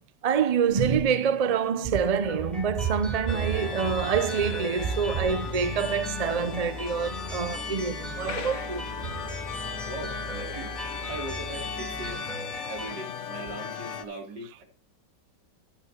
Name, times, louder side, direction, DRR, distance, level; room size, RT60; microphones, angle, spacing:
voice 1, 0.2-8.9, right 7 dB, 90° right, 0.3 m, -26 dB
sound 1, 2.2-12.9, left 1 dB, ahead, 3.7 m, -39 dB
sound 2, 3.3-14.0, left 6 dB, 45° left, 1.2 m, -37 dB
Engine, 4.8-12.2, right 1 dB, 30° left, 3.8 m, -41 dB
voice 2, 9.9-10.7 11.1-12.2 12.6-14.6, right 2 dB, 70° right, 3.9 m, -39 dB
12.0 x 11.5 x 3.0 m
omnidirectional pair, 1.9 m